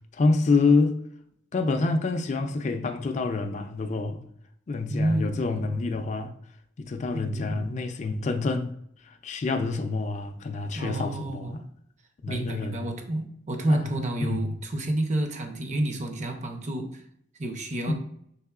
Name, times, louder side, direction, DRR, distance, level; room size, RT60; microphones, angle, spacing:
voice 1, 0.1-1.0 1.5-4.2 4.7-6.3 6.8-8.7 9.0-11.6 12.2-12.9 13.6-13.9 14.2-14.5 17.9-18.0, left 3 dB, 35° left, 0.3 m, -27 dB
voice 2, 4.9-5.7 7.1-7.7 10.7-11.6 12.3-17.0 17.4-17.9, right 1 dB, 35° right, 0.6 m, -30 dB
5.4 x 3.6 x 2.3 m
head